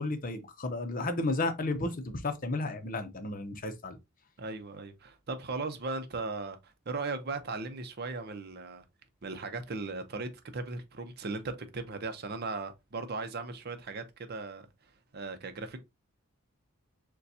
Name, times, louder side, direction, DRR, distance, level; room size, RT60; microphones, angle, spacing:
voice 1, 0.0-4.0, left 2 dB, 40° left, 0.6 m, -33 dB
voice 2, 4.4-8.8 9.2-14.7 15.1-15.8, right 3 dB, 50° right, 0.6 m, -37 dB
6.7 x 2.2 x 2.7 m
head